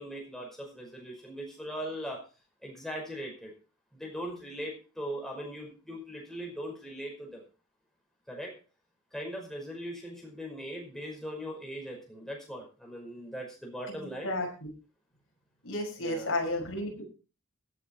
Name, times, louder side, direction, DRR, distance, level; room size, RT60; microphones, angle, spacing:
voice 1, 0.0-2.2 2.6-3.5 3.9-7.4 8.3-8.5 9.1-14.3 16.0-16.4, equal, ahead, -1 dB, 5.3 m, -40 dB
voice 2, 15.6-17.0, left 1 dB, 60° left, 1 dB, 6.0 m, -32 dB
17.0 x 8.5 x 4.6 m, 0.34 s
head